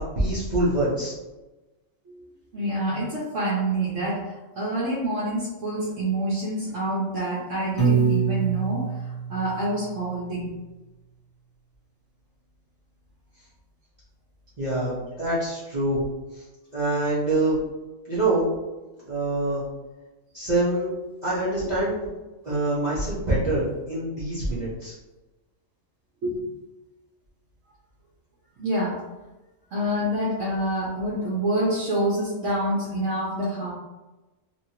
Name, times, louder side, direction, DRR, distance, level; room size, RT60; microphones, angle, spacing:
voice 1, 0.2-1.1 14.6-16.0 16.7-17.6 18.1-18.5 19.1-19.6 20.3-20.9 21.2-22.1 22.4-24.9, right 2 dB, 40° right, -11 dB, 0.8 m, -25 dB
voice 2, 2.5-10.5 21.6-21.9 22.5-22.6 26.2-26.5 28.6-29.0 29.7-33.7, right 1 dB, 70° right, -6 dB, 1.0 m, -27 dB
Piano, 7.8-10.0, right 6 dB, 30° left, 1.2 m, -24 dB
2.9 x 2.6 x 2.8 m, 1.1 s
omnidirectional pair, 1.4 m